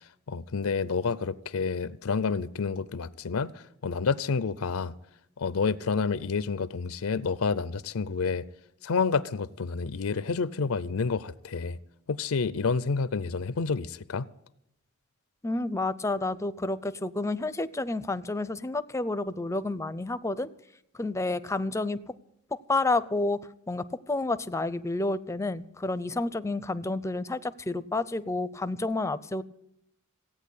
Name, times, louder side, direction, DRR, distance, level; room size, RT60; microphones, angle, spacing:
voice 1, 0.3-4.9 5.4-8.4 8.8-11.8 12.1-14.3, left 5 dB, 80° left, 0.6 m, -29 dB
voice 2, 15.4-20.5 21.0-22.1 22.5-29.4, left 2 dB, 15° left, 0.5 m, -30 dB
16.5 x 9.0 x 8.3 m
head